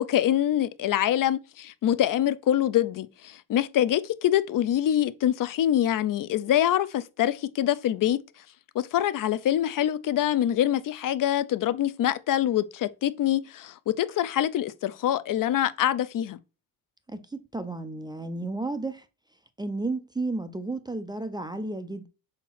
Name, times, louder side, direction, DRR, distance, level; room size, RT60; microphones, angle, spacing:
voice 1, 0.0-8.2 8.7-16.4, left 11 dB, 50° left, 0.5 m, -25 dB
voice 2, 17.1-19.1 19.6-22.1, right 2 dB, 10° right, 0.4 m, -32 dB
4.3 x 4.0 x 5.6 m
cardioid pair, 135°, 43 cm